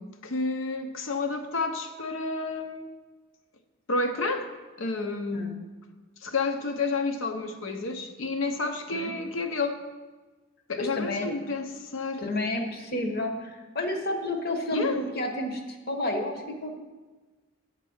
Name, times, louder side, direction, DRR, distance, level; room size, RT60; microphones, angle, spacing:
voice 1, 0.0-2.9 3.9-4.5 4.8-5.5 6.2-9.8 10.7-12.2 14.7-15.0, left 3 dB, 70° left, 7 dB, 0.7 m, -30 dB
voice 2, 10.8-11.3 12.2-16.8, left 1 dB, 45° left, 4 dB, 1.0 m, -31 dB
9.1 x 4.0 x 7.2 m, 1.3 s
head